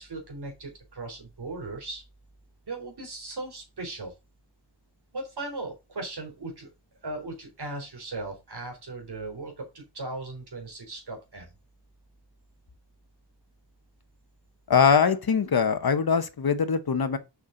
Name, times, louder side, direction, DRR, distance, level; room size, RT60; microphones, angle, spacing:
voice 1, 0.0-2.0 2.6-4.1 5.1-6.7 7.0-11.5, right 2 dB, 60° right, 3.8 m, -38 dB
voice 2, 14.7-17.2, left 6 dB, 55° left, 1.1 m, -22 dB
7.1 x 6.1 x 3.9 m
wide cardioid pair, 110°, 44 cm